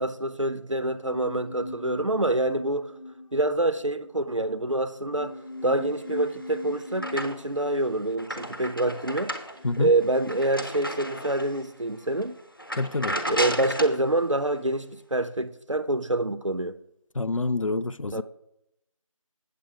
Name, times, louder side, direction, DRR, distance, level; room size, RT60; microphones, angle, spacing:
voice 1, 0.0-2.9 3.3-5.4 5.6-9.3 9.8-12.3 13.3-16.7 18.1-18.2, right 2 dB, 60° right, 0.6 m, -26 dB
sound 1, 0.7-10.1 10.3-10.4, left 2 dB, 90° left, 1.4 m, -42 dB
sound 2, 6.1-7.6 8.0-11.6 12.1-12.2 12.6-14.0, equal, 40° left, 1.0 m, -33 dB
voice 2, 12.8-13.2 17.2-18.2, left 3 dB, 70° left, 0.4 m, -27 dB
8.1 x 7.6 x 4.8 m
figure-of-eight pair, 180°, 18 cm